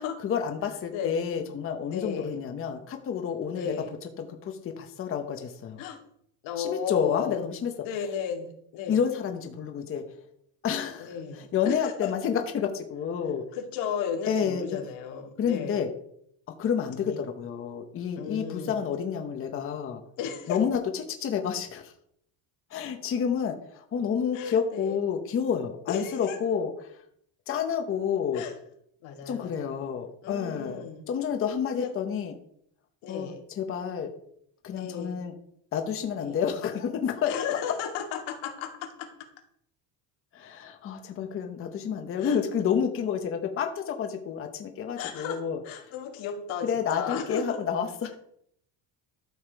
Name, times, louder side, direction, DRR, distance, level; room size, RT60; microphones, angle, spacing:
voice 1, 0.2-3.7 4.2-5.8 6.6-7.7 8.9-10.1 10.6-13.4 14.3-14.8 15.4-15.9 16.6-20.0 20.5-21.9 22.7-27.0 27.5-28.4 29.3-32.3 33.1-34.1 34.6-35.3 35.7-37.3 40.3-45.6 46.6-48.1, left 7 dB, 30° left, 5 dB, 1.0 m, -29 dB
voice 2, 1.9-2.4 3.5-3.9 5.8-6.0 6.4-7.4 7.8-9.0 11.0-12.1 13.5-15.8 17.0-17.2 18.2-18.8 20.2-20.6 24.3-25.0 25.9-26.4 28.3-28.5 29.0-29.7 30.2-31.1 31.8-31.9 33.0-33.4 34.7-35.1 36.2-36.4 37.3-39.1 42.2-42.4 45.0-45.4 45.6-47.6, left 7 dB, 85° left, 3 dB, 2.4 m, -34 dB
12.5 x 7.3 x 4.7 m, 0.69 s
cardioid pair, 175°, 45 cm